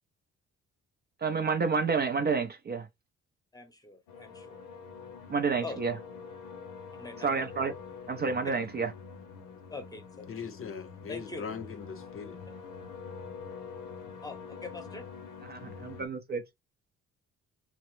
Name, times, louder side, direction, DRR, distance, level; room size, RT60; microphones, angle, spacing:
voice 1, 1.2-2.9 5.3-6.0 7.2-7.7 8.1-8.9 11.0-11.1 15.4-16.4, right 5 dB, 35° right, 0.5 m, -29 dB
voice 2, 3.5-4.6 5.6-5.8 7.0-7.4 9.7-10.3 11.1-11.5 14.2-15.1, left 3 dB, 10° left, 0.8 m, -43 dB
sound 1, 4.1-16.1, left 5 dB, 90° left, 0.7 m, -45 dB
voice 3, 10.3-12.4, left 6 dB, 45° left, 0.6 m, -40 dB
2.9 x 2.0 x 3.1 m
cardioid pair, 90°, 30 cm